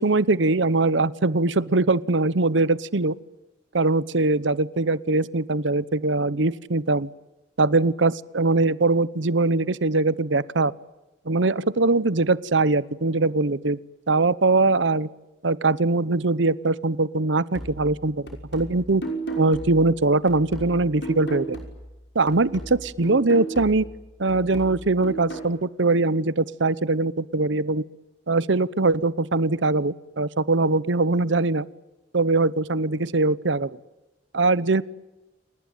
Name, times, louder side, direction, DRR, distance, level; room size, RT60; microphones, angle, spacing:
voice 1, 0.0-3.2 3.7-7.1 7.6-10.7 11.3-13.8 14.1-15.1 15.4-18.3 18.5-19.0 19.4-21.6 22.1-23.8 24.2-27.8 28.3-31.7 32.1-33.7 34.3-34.8, right 3 dB, 85° right, 19 dB, 0.9 m, -22 dB
sound 1, 17.5-22.0 22.3-25.5, right 2 dB, 70° left, 5.8 m, -35 dB
29.0 x 19.0 x 9.3 m, 1.1 s
head